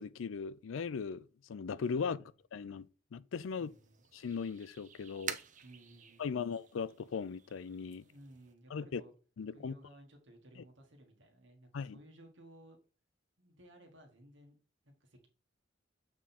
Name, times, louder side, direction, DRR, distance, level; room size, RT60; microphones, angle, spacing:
voice 1, 0.0-2.9 3.1-3.7 4.1-5.4 6.2-8.0 8.7-9.0 9.4-9.7 11.7-12.0, left 5 dB, 90° left, 0.4 m, -38 dB
sound 1, 3.3-8.5, right 7 dB, 40° right, 0.7 m, -49 dB
voice 2, 3.6-4.0 5.6-6.5 8.0-9.1 9.5-12.8 13.4-14.6 14.8-15.3, right 1 dB, 70° right, 1.6 m, -58 dB
7.3 x 3.7 x 4.2 m
head